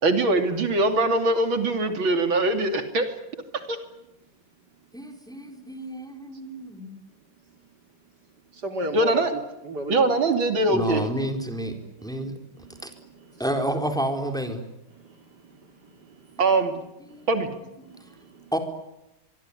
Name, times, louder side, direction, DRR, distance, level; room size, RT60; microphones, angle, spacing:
voice 1, 0.0-3.2 3.7-3.8 8.9-9.3 9.9-11.0 16.4-16.7 17.3-17.5, right 2 dB, 80° right, 7 dB, 3.6 m, -22 dB
voice 2, 4.9-6.9 10.0-10.2 10.7-11.7 12.0-12.3 12.8-12.9 13.4-14.6 17.1-17.3 17.8-17.9 18.5-18.6, right 1 dB, ahead, 5 dB, 4.2 m, -29 dB
voice 3, 8.5-9.4 9.6-10.1 12.7-12.8 15.0-15.2 15.8-16.4 17.9-18.4, right 1 dB, 55° right, 6 dB, 3.3 m, -34 dB
24.5 x 24.5 x 10.0 m, 0.92 s
omnidirectional pair, 2.1 m